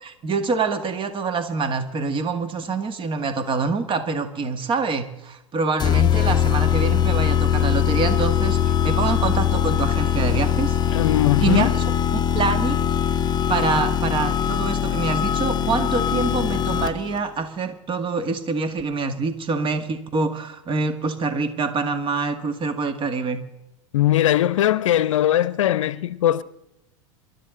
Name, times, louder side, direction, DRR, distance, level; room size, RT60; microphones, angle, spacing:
voice 1, 0.0-11.0 11.4-12.9 13.5-23.4, right 4 dB, 30° right, 1.9 m, -26 dB
sound 1, 5.8-17.2, left 9 dB, 25° left, 0.8 m, -21 dB
voice 2, 10.9-11.7 23.9-26.4, left 12 dB, 70° left, 0.7 m, -20 dB
27.0 x 12.5 x 3.9 m
hypercardioid pair, 90°, 17 cm